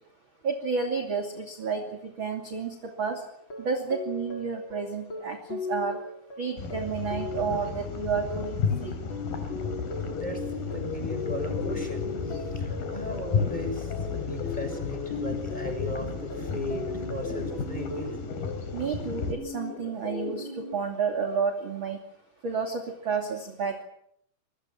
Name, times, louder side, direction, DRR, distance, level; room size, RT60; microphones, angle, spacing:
voice 1, 0.4-3.2 3.6-6.0 6.4-8.9 18.7-22.0 22.4-23.8, right 5 dB, 30° right, 3 dB, 2.8 m, -31 dB
sound 1, 3.4-18.2, left 3 dB, 30° left, 4.2 m, -39 dB
sound 2, 6.6-19.3, left 5 dB, 55° left, 4.7 m, -33 dB
sound 3, 9.5-20.7, left 4 dB, 75° left, 6.5 m, -39 dB
voice 2, 10.1-10.4 10.7-18.2, left 1 dB, 10° left, 5 dB, 6.2 m, -37 dB
26.5 x 23.5 x 7.3 m, 0.71 s
omnidirectional pair, 5.2 m